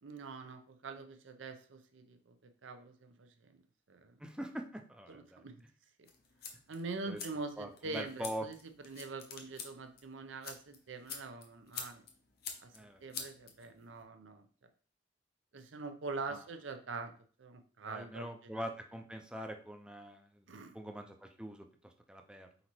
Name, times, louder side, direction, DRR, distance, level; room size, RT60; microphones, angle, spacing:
voice 1, 0.0-2.4 2.6-3.6 3.9-4.2 5.1-5.5 6.0-6.1 6.7-8.6 8.8-12.0 12.6-12.7 13.0-14.5 15.5-17.1 17.4-18.6 20.5-20.8, right 3 dB, 90° right, 7 dB, 0.6 m, -44 dB
voice 2, 4.2-5.4 7.1-7.2 7.6-8.5 12.7-13.0 16.3-16.4 17.8-20.5 20.7-22.5, equal, 5° right, 5 dB, 0.4 m, -43 dB
sound 1, 6.0-14.0, left 6 dB, 55° left, 0.7 m, -48 dB
4.1 x 3.9 x 3.0 m, 0.43 s
head